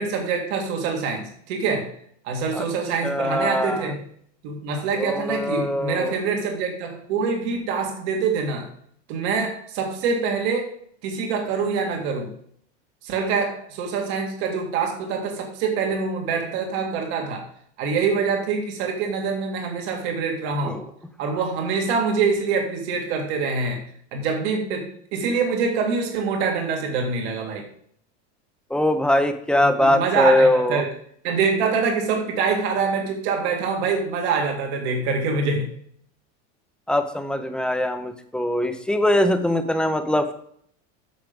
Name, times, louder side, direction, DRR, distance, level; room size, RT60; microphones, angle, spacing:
voice 1, 0.0-1.9 2.2-4.0 4.4-8.7 9.1-10.7 11.0-12.3 13.0-17.5 17.8-20.8 21.2-23.8 24.1-27.7 29.6-30.9 31.2-35.7, right 5 dB, 70° right, 2 dB, 2.1 m, -25 dB
voice 2, 3.0-3.8 5.0-6.1 20.7-20.8 28.7-30.8 36.9-40.3, left 1 dB, 5° left, 7 dB, 0.6 m, -21 dB
9.3 x 6.6 x 5.1 m, 0.64 s
supercardioid pair, 155°, 34 cm